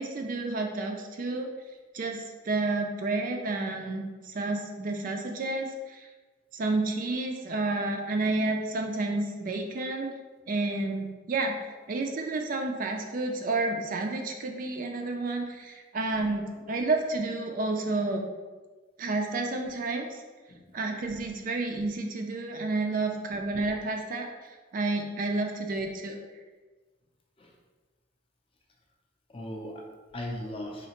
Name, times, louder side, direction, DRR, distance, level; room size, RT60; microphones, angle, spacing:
voice 1, 0.0-1.5 1.9-6.1 6.5-10.1 10.5-11.6 11.9-18.3 19.0-20.2 20.7-26.2, right 2 dB, 40° right, 3 dB, 0.3 m, -30 dB
voice 2, 29.3-30.9, left 1 dB, 25° left, 0 dB, 0.4 m, -38 dB
4.2 x 2.8 x 2.9 m, 1.3 s
head